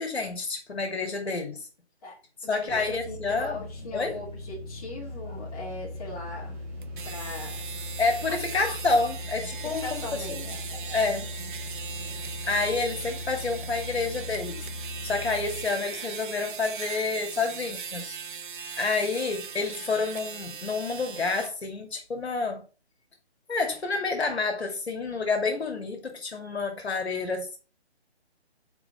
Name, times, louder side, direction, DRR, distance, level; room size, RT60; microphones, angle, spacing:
voice 1, 0.0-1.7 2.5-3.7 3.9-4.2 8.0-10.0 10.3-10.5 10.9-11.3 12.5-18.1 18.8-22.6 23.5-27.6, left 3 dB, 70° left, 2.6 m, -29 dB
voice 2, 2.4-6.6 7.0-7.9 8.3-8.4 9.6-11.0, left 2 dB, 35° left, 2.5 m, -40 dB
sound 1, 2.7-15.6, left 2 dB, 10° right, 0.9 m, -39 dB
sound 2, 6.8-21.5, right 6 dB, 50° right, 0.5 m, -39 dB
6.0 x 4.8 x 5.9 m
hypercardioid pair, 160°, 33 cm